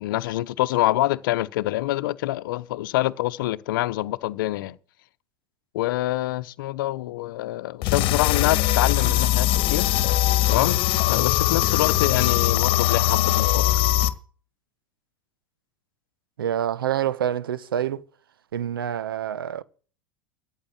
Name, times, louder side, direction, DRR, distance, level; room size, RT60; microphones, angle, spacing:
voice 1, 0.0-4.8 5.7-9.9 10.5-10.8 11.1-13.8, left 16 dB, 70° left, 0.9 m, -26 dB
sound 1, 7.8-14.1, left 14 dB, 50° left, 1.4 m, -21 dB
voice 2, 16.4-18.0 18.5-19.6, right 10 dB, 85° right, 1.0 m, -27 dB
14.0 x 9.1 x 7.2 m
hypercardioid pair, 95°, 11 cm